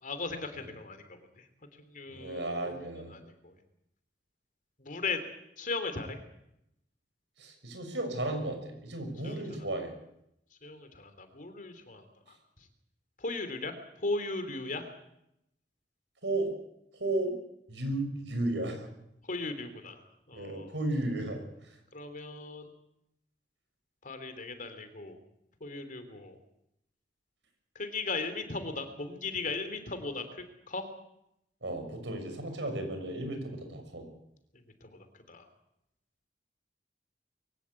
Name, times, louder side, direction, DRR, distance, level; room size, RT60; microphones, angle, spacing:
voice 1, 0.0-1.4 1.8-3.5 4.8-5.2 5.6-6.2 9.2-9.4 10.6-12.0 13.2-14.9 19.3-20.0 20.3-20.7 21.9-22.7 24.0-25.2 25.6-26.4 27.7-30.9 34.8-35.0 35.3-35.5, left 3 dB, 50° left, 9 dB, 3.2 m, -37 dB
voice 2, 2.1-3.2 7.4-9.9 16.2-16.5 16.9-17.4 17.7-18.9 20.3-21.8 31.6-34.1, right 2 dB, 85° right, 5 dB, 6.3 m, -34 dB
23.0 x 16.5 x 8.5 m, 0.80 s
head